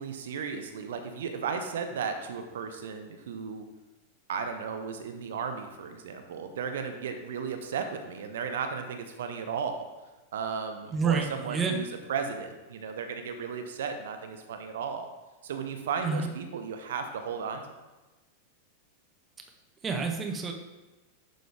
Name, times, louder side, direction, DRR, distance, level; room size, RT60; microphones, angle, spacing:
voice 1, 0.0-3.6 4.3-9.9 10.3-15.1 15.4-17.6, right 6 dB, 60° right, 7 dB, 0.8 m, -35 dB
voice 2, 10.9-11.7 16.0-16.3 19.8-20.5, right 5 dB, 20° right, 3 dB, 1.1 m, -28 dB
11.5 x 3.9 x 3.5 m, 1.1 s
figure-of-eight pair, 90°, 0 cm